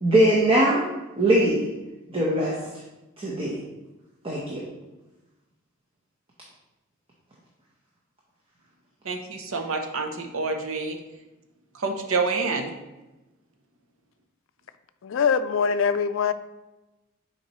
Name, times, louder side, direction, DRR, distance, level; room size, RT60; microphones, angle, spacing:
voice 1, 0.0-0.9 1.2-1.7 2.1-2.6 3.2-3.6 4.2-4.6, right 1 dB, 25° right, -4 dB, 0.9 m, -21 dB
voice 2, 9.0-11.0 11.7-12.7, right 4 dB, 80° right, 4 dB, 0.8 m, -28 dB
voice 3, 15.0-16.3, left 6 dB, 65° left, 12 dB, 0.4 m, -23 dB
7.1 x 4.6 x 3.1 m, 1.0 s
head